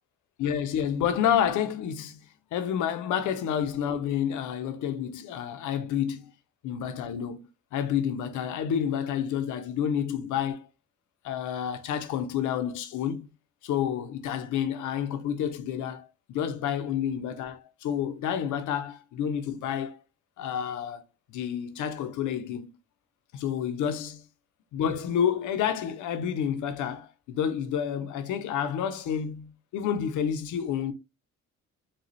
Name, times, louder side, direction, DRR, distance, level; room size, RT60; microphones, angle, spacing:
voice 1, 0.4-6.2 6.6-7.4 7.7-10.7 11.2-13.3 13.6-20.0 20.4-21.0 21.3-22.7 23.3-24.2 24.7-30.9, left 9 dB, 80° left, 0.7 m, -29 dB
4.0 x 2.3 x 3.0 m
cardioid pair, 90°, 30 cm